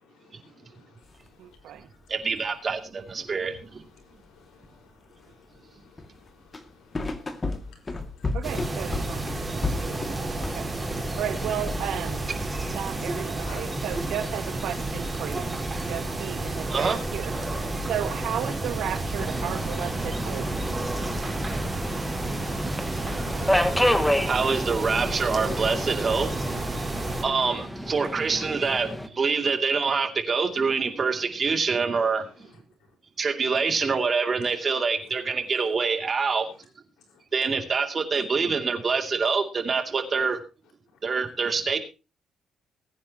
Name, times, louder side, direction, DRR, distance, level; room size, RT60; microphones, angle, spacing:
voice 1, 0.1-1.9 3.2-8.3 13.0-13.9 29.3-29.4 32.2-32.3 37.1-37.2, left 4 dB, 85° left, 5.0 m, -55 dB
sound 1, 1.0-1.3 1.5-1.6 2.1-2.4 3.0-3.1 3.9-5.6 6.0-11.1 11.4-12.0 12.5-12.7, left 3 dB, 25° left, 2.2 m, -33 dB
voice 2, 1.4-1.9 8.3-10.7 11.2-12.2 12.7-15.5 15.9-17.3 17.9-20.5 27.3-27.7, right 10 dB, 80° right, 1.8 m, -34 dB
voice 3, 2.1-3.8 16.7-17.0 24.3-26.3 27.2-32.3 33.2-36.5 37.3-40.4 41.0-41.8, right 5 dB, 40° right, 2.6 m, -25 dB
sound 2, 8.4-27.2, right 2 dB, 15° right, 4.5 m, -31 dB
Subway metro underground, 19.2-29.1, equal, 5° left, 1.6 m, -30 dB
20.5 x 9.5 x 2.9 m
cardioid pair, 90°, 0 cm